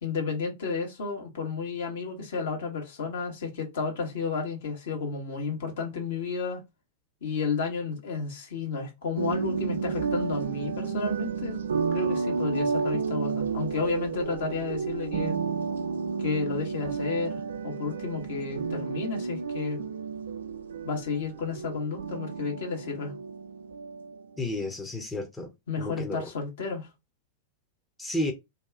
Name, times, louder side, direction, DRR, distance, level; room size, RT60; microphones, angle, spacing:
voice 1, 0.0-6.6 7.2-11.6 11.9-15.4 16.2-19.8 20.8-23.1 25.7-26.9, left 4 dB, 60° left, 1.2 m, -32 dB
sound 1, 9.2-24.2, right 5 dB, 65° right, 0.4 m, -31 dB
voice 2, 24.4-25.5 25.8-26.3 28.0-28.3, left 1 dB, 10° left, 0.7 m, -32 dB
2.7 x 2.3 x 3.7 m
figure-of-eight pair, 90°, 0 cm